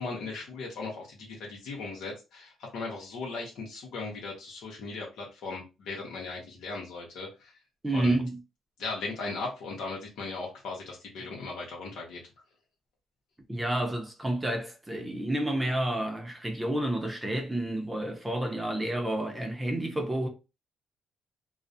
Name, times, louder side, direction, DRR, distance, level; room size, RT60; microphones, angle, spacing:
voice 1, 0.0-7.5 7.9-8.2 8.8-12.2, left 3 dB, 85° left, 0.8 m, -38 dB
voice 2, 7.8-8.4 13.5-20.3, right 1 dB, 10° right, 0.6 m, -30 dB
2.3 x 2.0 x 2.6 m
cardioid pair, 90°, 0 cm